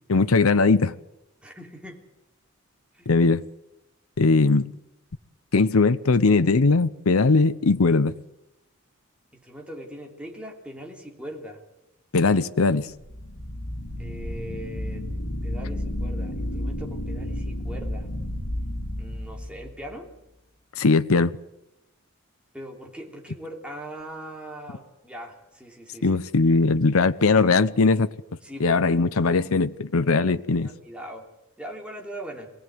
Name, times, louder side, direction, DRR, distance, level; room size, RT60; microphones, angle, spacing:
voice 1, 0.1-0.9 3.1-3.4 4.2-4.7 5.5-8.1 12.1-12.9 20.8-21.3 26.0-28.1 28.6-30.7, left 3 dB, 80° left, 0.8 m, -20 dB
voice 2, 1.4-2.0 2.9-3.1 9.3-11.6 14.0-15.0 15.4-18.1 19.0-20.1 22.5-26.2 28.4-28.8 30.6-31.2 31.6-32.5, right 1 dB, 5° right, 3.1 m, -40 dB
sound 1, 12.9-19.9, left 1 dB, 55° left, 4.8 m, -32 dB
23.5 x 17.5 x 9.5 m
head